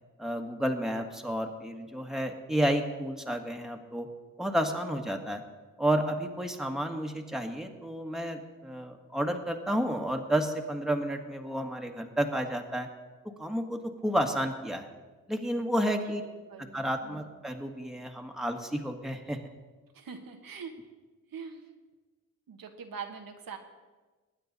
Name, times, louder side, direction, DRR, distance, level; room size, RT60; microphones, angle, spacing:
voice 1, 0.2-4.1 4.4-5.4 5.8-12.9 13.4-14.9 15.3-16.2 16.7-19.4, equal, ahead, 3 dB, 1.6 m, -31 dB
voice 2, 19.9-20.7 21.3-21.7 22.5-23.6, right 6 dB, 75° right, 4 dB, 1.4 m, -43 dB
20.5 x 9.1 x 4.1 m, 1.3 s
cardioid pair, 65°, 35 cm